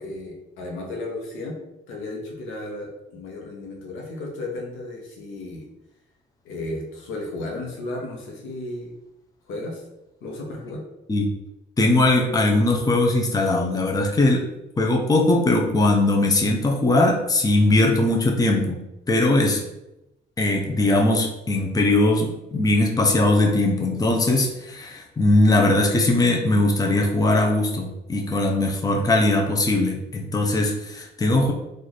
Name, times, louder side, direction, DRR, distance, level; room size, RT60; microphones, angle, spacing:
voice 1, 0.0-1.6 1.9-5.7 6.4-8.9 9.5-9.8 10.2-10.8, left 2 dB, 85° left, 0 dB, 1.0 m, -34 dB
voice 2, 11.8-14.5 14.8-19.6 20.4-31.5, left 2 dB, 20° left, 1 dB, 0.6 m, -20 dB
3.1 x 2.5 x 4.1 m, 0.91 s
cardioid pair, 90°, 20 cm